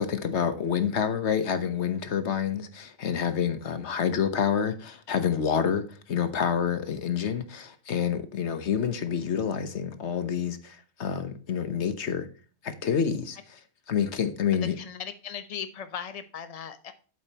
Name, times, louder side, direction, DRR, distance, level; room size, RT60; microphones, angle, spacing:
voice 1, 0.0-12.3 12.6-13.6 13.9-14.8, left 7 dB, 85° left, 1.3 m, -28 dB
voice 2, 14.8-16.9, left 8 dB, 35° left, 0.9 m, -38 dB
8.7 x 7.7 x 2.9 m
omnidirectional pair, 1.1 m